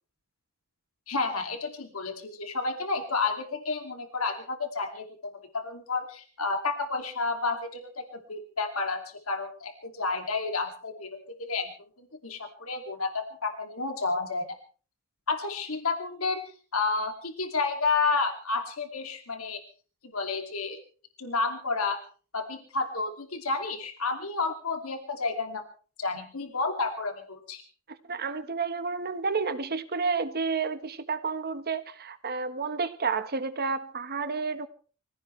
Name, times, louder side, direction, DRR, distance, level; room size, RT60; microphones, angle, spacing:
voice 1, 1.1-9.0 9.3-11.7 12.0-14.5 15.3-16.4 16.7-19.6 20.1-20.8 21.2-22.0 22.3-25.6 26.0-27.6, left 3 dB, 85° left, 2.5 m, -31 dB
voice 2, 28.1-34.7, right 4 dB, 50° right, 1.3 m, -30 dB
24.5 x 16.5 x 3.3 m
head